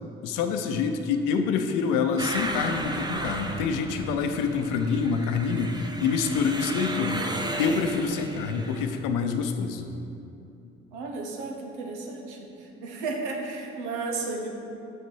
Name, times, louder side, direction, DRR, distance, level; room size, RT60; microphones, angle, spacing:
voice 1, 0.2-9.9, left 5 dB, 65° left, 6 dB, 0.7 m, -26 dB
sound 1, 2.2-9.0, right 2 dB, 10° right, 0.7 m, -34 dB
voice 2, 10.9-12.5 12.8-14.5, right 3 dB, 80° right, 1 dB, 1.0 m, -33 dB
6.5 x 6.3 x 4.7 m, 2.8 s
figure-of-eight pair, 45°, 34 cm